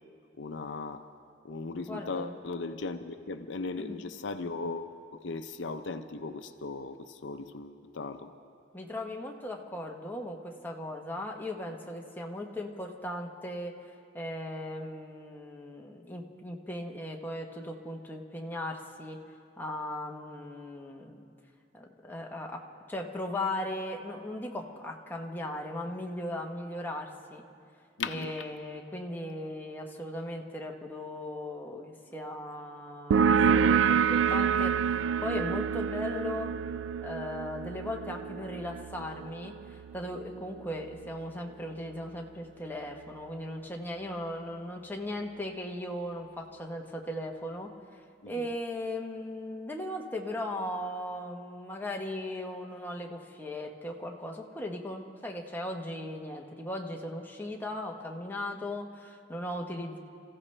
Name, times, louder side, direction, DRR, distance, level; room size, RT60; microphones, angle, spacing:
voice 1, 0.3-1.0 1.4-8.3 28.0-28.4 48.2-48.5, left 3 dB, 70° left, 9 dB, 0.6 m, -37 dB
voice 2, 1.9-2.4 3.8-4.0 8.7-13.7 14.1-19.2 19.6-21.2 21.7-27.4 28.1-36.5 37.0-47.7 48.3-60.0, left 1 dB, 10° left, 0 dB, 1.1 m, -38 dB
sound 1, 33.1-40.4, right 7 dB, 80° right, 0.3 m, -27 dB
28.5 x 15.0 x 3.3 m, 2.4 s
head